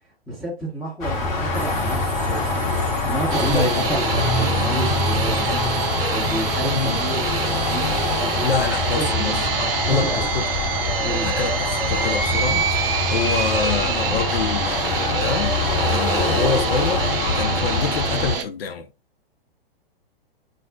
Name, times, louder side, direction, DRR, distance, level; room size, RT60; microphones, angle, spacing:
voice 1, 0.3-2.6 3.0-5.5 6.1-8.6 9.0-10.3 11.0-11.3, right 2 dB, ahead, 0.7 m, -31 dB
sound 1, 1.0-18.4, left 3 dB, 50° left, 1.1 m, -24 dB
Subway metro underground, 1.5-11.0, right 3 dB, 30° right, 1.0 m, -39 dB
sound 2, 3.3-18.4, right 7 dB, 65° right, 0.6 m, -26 dB
voice 2, 3.5-3.9 6.0-6.1 6.6-7.0 8.4-10.5 11.2-15.5 15.9-18.9, left 5 dB, 70° left, 0.5 m, -26 dB
2.5 x 2.0 x 3.6 m
figure-of-eight pair, 110°, 30 cm